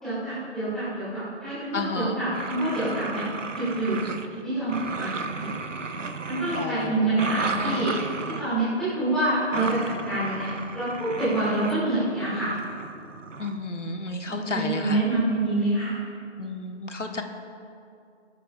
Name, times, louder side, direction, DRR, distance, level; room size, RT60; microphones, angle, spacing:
voice 1, 0.0-3.2 3.5-4.1 4.4-5.1 5.4-5.5 6.3-7.9 8.4-12.5 14.3-15.9, right 2 dB, ahead, -14 dB, 2.2 m, -26 dB
voice 2, 1.7-2.2 6.6-7.9 13.4-15.0 16.4-17.2, left 3 dB, 80° left, 4 dB, 1.4 m, -32 dB
sound 1, 2.3-4.4 4.7-8.5 9.5-11.8 12.3-13.6, right 4 dB, 85° right, 1.1 m, -34 dB
20.5 x 11.5 x 2.5 m, 2.5 s
figure-of-eight pair, 165°, 36 cm